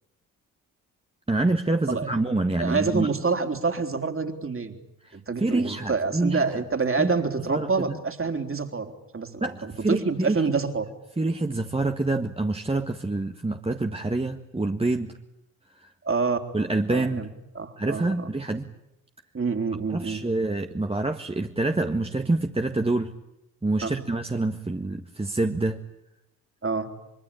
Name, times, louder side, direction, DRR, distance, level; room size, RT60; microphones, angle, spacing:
voice 1, 1.3-3.1 5.0-6.6 7.0-7.1 7.5-8.0 9.4-10.4 11.2-15.1 15.8-15.9 16.5-17.3 17.8-18.7 19.9-23.1 23.6-25.8, right 2 dB, 15° right, 5 dB, 1.7 m, -26 dB
voice 2, 2.6-4.8 5.1-10.9 16.0-16.4 16.9-17.3 17.6-18.3 19.3-20.2 23.8-23.9 26.6-26.9, right 4 dB, 30° right, 6 dB, 3.7 m, -27 dB
26.0 x 23.5 x 8.8 m, 0.88 s
hypercardioid pair, 45°, 41 cm